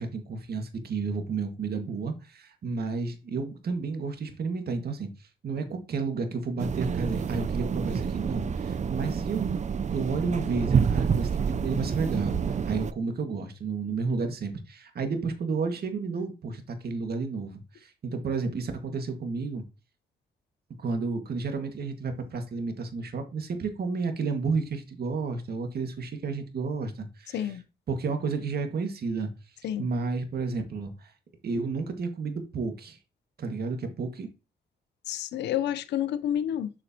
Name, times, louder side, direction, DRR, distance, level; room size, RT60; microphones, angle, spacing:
voice 1, 0.0-5.1 5.4-9.6 9.9-19.6 20.8-27.5 27.9-29.3 29.8-31.1 31.4-33.0 33.4-34.3, right 4 dB, 65° right, 1.9 m, -31 dB
sound 1, 6.6-12.9, right 6 dB, 45° right, 0.6 m, -28 dB
voice 2, 35.1-36.7, left 10 dB, 85° left, 0.7 m, -29 dB
7.6 x 6.4 x 2.9 m
supercardioid pair, 60°, 17 cm